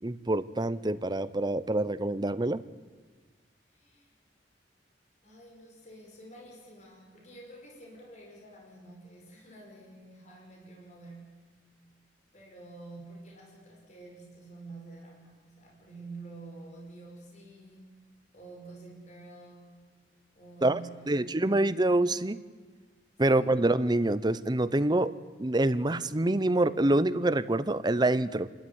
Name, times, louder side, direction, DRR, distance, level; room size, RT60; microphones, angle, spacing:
voice 1, 0.0-2.6 20.6-20.8 21.1-22.4 23.2-25.1 25.4-28.5, right 2 dB, 25° right, 15 dB, 0.8 m, -26 dB
voice 2, 3.7-4.2 5.2-11.4 12.3-17.8 18.3-19.9 20.4-21.7 23.1-23.5, right 2 dB, 40° left, -1 dB, 5.5 m, -48 dB
28.5 x 13.0 x 9.7 m, 1.4 s
head